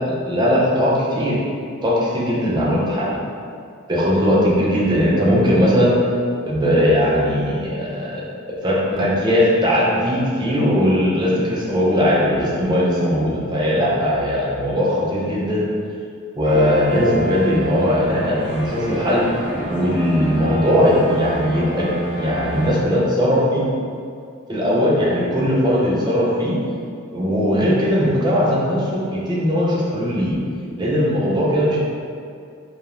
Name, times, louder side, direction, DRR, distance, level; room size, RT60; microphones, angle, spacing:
voice 1, 0.0-1.4 1.8-3.2 3.9-5.9 6.4-8.2 8.5-15.7 16.4-19.3 19.7-21.9 22.2-23.6 24.5-26.6 27.1-30.4 30.8-31.8, equal, 20° right, -6 dB, 0.4 m, -19 dB
sound 1, 16.4-22.7, equal, 40° right, 0.8 m, -28 dB
2.3 x 2.0 x 2.9 m, 2.3 s
head